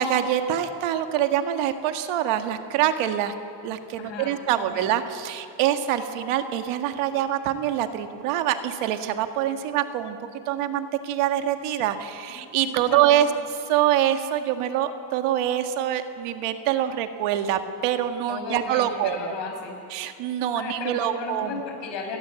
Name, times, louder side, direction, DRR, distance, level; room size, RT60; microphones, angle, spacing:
voice 1, 0.0-3.3 3.6-10.2 10.5-13.3 13.7-19.3 19.9-21.6, right 11 dB, 90° right, 7 dB, 1.8 m, -25 dB
voice 2, 4.0-4.8 12.3-13.2 18.3-19.7 20.6-22.2, left 5 dB, 60° left, 3 dB, 5.9 m, -35 dB
29.0 x 20.0 x 7.7 m, 2.7 s
cardioid pair, 140°, 50 cm